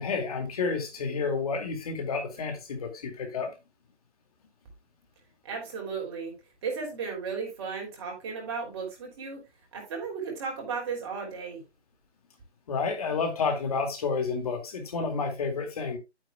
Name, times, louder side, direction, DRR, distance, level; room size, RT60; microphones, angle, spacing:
voice 1, 0.0-3.5 12.7-16.0, left 4 dB, 35° left, 2.3 m, -30 dB
voice 2, 5.4-6.3 6.6-9.4 9.7-11.6, right 5 dB, 20° right, 3.2 m, -35 dB
9.7 x 9.5 x 2.3 m
hypercardioid pair, 170°, 35 cm